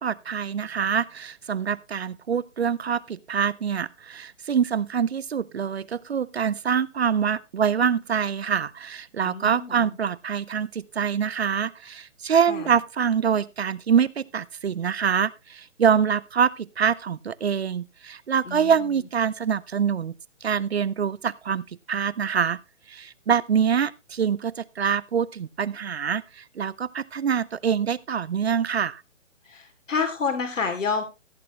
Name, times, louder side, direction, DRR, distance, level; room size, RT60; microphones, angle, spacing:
voice 1, 0.0-20.1 20.4-22.6 22.9-29.0, right 7 dB, 55° right, 0.6 m, -25 dB
voice 2, 9.2-9.8 12.5-12.7 18.4-18.7 29.5-31.0, left 5 dB, 80° left, 2.9 m, -28 dB
15.0 x 8.6 x 3.1 m
hypercardioid pair, 175°, 37 cm